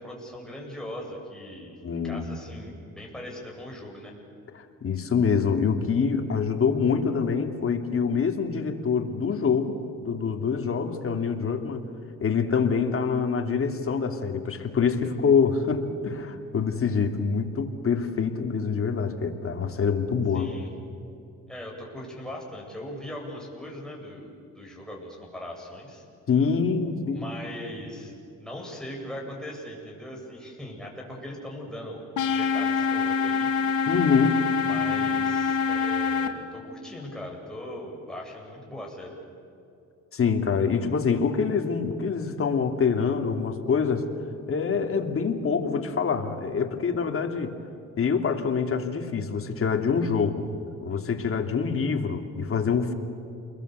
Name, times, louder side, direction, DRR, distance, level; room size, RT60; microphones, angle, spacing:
voice 1, 0.0-1.7 2.0-4.1 20.3-20.7 21.5-26.0 27.1-28.1 28.4-33.5 34.6-39.1, left 1 dB, ahead, -1 dB, 7.9 m, -39 dB
voice 2, 1.8-2.2 4.5-11.9 12.2-20.5 26.3-27.3 33.9-34.4 40.1-44.1 44.5-47.5 48.0-50.4 50.8-52.9, left 5 dB, 45° left, 4 dB, 2.9 m, -25 dB
sound 1, 32.2-36.3, left 5 dB, 75° left, 2.0 m, -25 dB
29.0 x 21.5 x 8.2 m, 2.7 s
cardioid pair, 90°, 30 cm